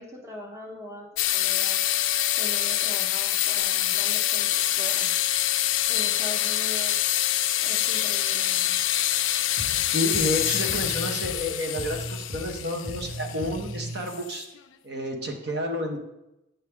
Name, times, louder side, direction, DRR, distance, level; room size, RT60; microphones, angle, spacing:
voice 1, 0.0-1.8 2.3-5.3 5.9-7.0 7.6-8.8, equal, 15° right, 0 dB, 0.7 m, -41 dB
sound 1, 1.2-14.6, left 13 dB, 75° left, 0.4 m, -26 dB
sound 2, 9.6-14.1, equal, 85° right, 2.1 m, -37 dB
voice 2, 9.8-14.4 14.8-16.0, left 1 dB, 55° right, 2 dB, 1.1 m, -30 dB
8.1 x 5.8 x 3.6 m, 0.89 s
head